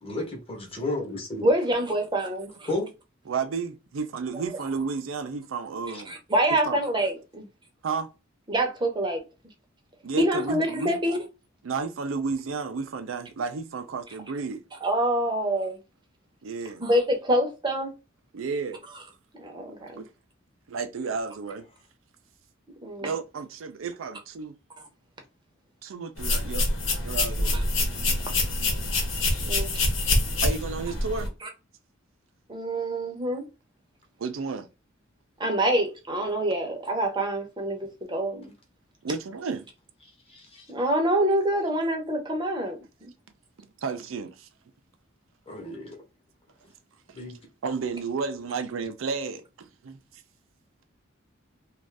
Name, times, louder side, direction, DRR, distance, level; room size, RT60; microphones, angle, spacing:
voice 1, 0.0-1.5 2.7-2.9 5.9-6.0 40.3-40.7 45.5-46.0 47.1-47.4, left 2 dB, 30° left, 0.9 m, -33 dB
voice 2, 1.4-2.7 4.3-4.4 6.1-7.4 8.5-9.2 10.2-11.2 14.8-15.8 16.8-17.9 19.4-20.0 22.8-23.1 29.4-29.7 31.4-31.5 32.5-33.4 35.4-38.5 40.7-42.8, right 1 dB, 25° right, 0.8 m, -26 dB
voice 3, 3.3-6.2 6.7-6.8 7.8-8.1 10.0-11.0 11.6-14.6 16.4-16.8 18.3-18.8 20.0-20.1 20.7-21.6 23.0-24.5 25.8-26.6 27.0-27.7 30.4-31.3 34.2-34.7 39.0-39.7 43.8-44.5 47.6-50.0, right 5 dB, 85° right, 0.5 m, -32 dB
sound 1, 26.2-31.3, left 2 dB, 70° left, 1.0 m, -26 dB
2.6 x 2.4 x 3.3 m
head